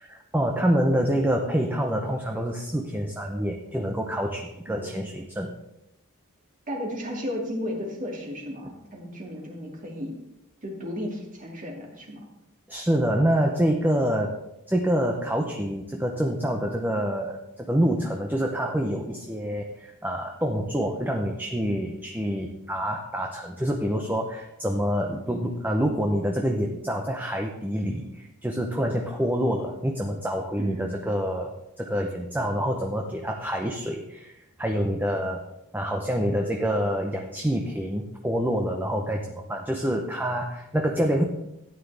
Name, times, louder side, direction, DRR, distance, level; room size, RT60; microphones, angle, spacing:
voice 1, 0.0-5.5 12.7-14.3 14.7-35.4 35.7-41.2, equal, 10° right, 2 dB, 0.8 m, -27 dB
voice 2, 4.7-5.1 6.7-10.2 10.6-12.3 30.6-31.0, equal, 35° right, 0 dB, 2.3 m, -34 dB
13.0 x 9.3 x 3.4 m, 0.89 s
head